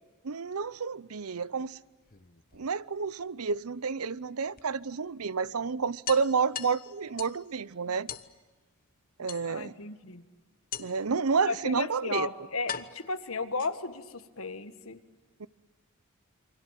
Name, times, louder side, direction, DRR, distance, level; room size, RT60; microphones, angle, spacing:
voice 1, 0.2-1.8 2.5-8.1 9.2-9.7 10.8-12.3 15.4-15.5, right 5 dB, 80° right, 19 dB, 0.7 m, -30 dB
sound 1, 1.9-3.1 4.6-4.7 5.1-5.2 5.5-5.6 6.1-7.5 8.1-8.3 9.3-9.8 10.7-11.1 12.0-12.1 12.7-14.0, left 8 dB, 40° left, 1.1 m, -40 dB
voice 2, 9.4-10.2 11.5-15.0, left 3 dB, 65° left, 10 dB, 1.8 m, -35 dB
28.5 x 25.0 x 7.5 m, 1.3 s
head